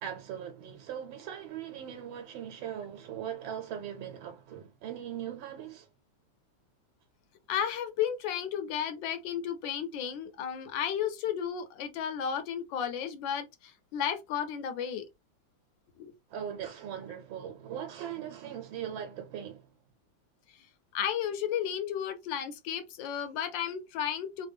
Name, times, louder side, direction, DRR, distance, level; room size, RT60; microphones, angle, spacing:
voice 1, 0.0-5.9 16.3-19.7, right 9 dB, 90° right, 1.4 m, -40 dB
voice 2, 7.5-15.0 16.0-16.1 20.9-24.5, left 9 dB, 80° left, 1.3 m, -33 dB
3.3 x 2.2 x 3.3 m
omnidirectional pair, 2.1 m